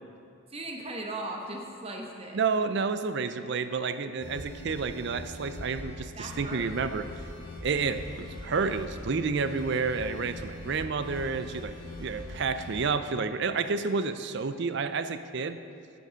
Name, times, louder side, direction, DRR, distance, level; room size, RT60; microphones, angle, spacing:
voice 1, 0.5-2.4 6.1-6.6, right 2 dB, 25° right, 1 dB, 1.0 m, -38 dB
voice 2, 2.3-7.1 7.6-15.6, right 4 dB, 55° right, 11 dB, 0.4 m, -30 dB
sound 1, 4.2-12.8, left 1 dB, 20° left, 1.4 m, -42 dB
10.5 x 6.9 x 6.2 m, 2.5 s
head